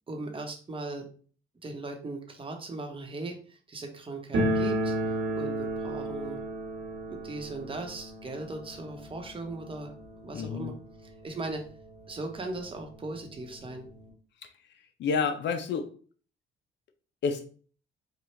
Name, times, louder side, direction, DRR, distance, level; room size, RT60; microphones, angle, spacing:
voice 1, 0.1-1.1 1.6-3.4 3.7-4.9 5.4-6.4 7.1-9.9 10.2-10.7 11.0-11.6 12.1-13.8, right 2 dB, 25° right, 3 dB, 0.9 m, -38 dB
sound 1, 4.3-11.0 11.3-11.4 11.6-11.7 12.5-12.6 12.9-14.1, right 1 dB, 70° right, 1.2 m, -33 dB
voice 2, 10.3-10.7 14.4-14.5 15.0-15.9 17.2-17.5, left 5 dB, 65° left, 7 dB, 0.5 m, -29 dB
4.4 x 2.3 x 3.1 m, 0.42 s
cardioid pair, 90°, 20 cm